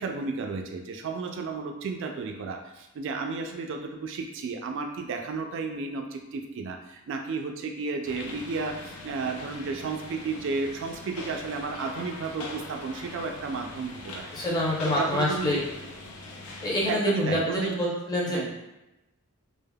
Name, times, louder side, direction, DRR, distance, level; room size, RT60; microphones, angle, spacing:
voice 1, 0.0-14.3 14.8-15.6 16.9-17.8 18.3-18.5, right 4 dB, 55° right, 3 dB, 0.3 m, -33 dB
sound 1, 8.0-16.9, left 2 dB, 80° left, 0.5 m, -42 dB
voice 2, 14.3-15.6 16.6-18.6, left 1 dB, 15° left, -5 dB, 0.6 m, -27 dB
3.3 x 2.0 x 2.2 m, 0.97 s
head